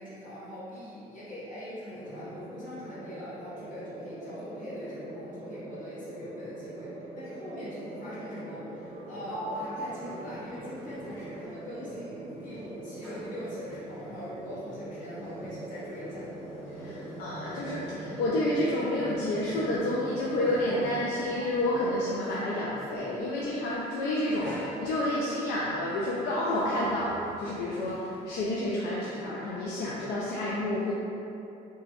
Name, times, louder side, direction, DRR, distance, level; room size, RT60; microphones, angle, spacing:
voice 1, 0.0-16.3, equal, 50° left, -9 dB, 1.1 m, -42 dB
sound 1, 1.9-21.4, right 1 dB, 25° right, 0.6 m, -42 dB
Sliding door, 8.8-12.1 12.4-22.6 23.5-23.8 24.4-25.3 25.9-28.4, right 1 dB, 5° left, 0.9 m, -44 dB
voice 2, 16.8-30.9, left 1 dB, 75° left, -6 dB, 0.4 m, -30 dB
2.9 x 2.3 x 2.8 m, 2.7 s
cardioid pair, 110°, 17 cm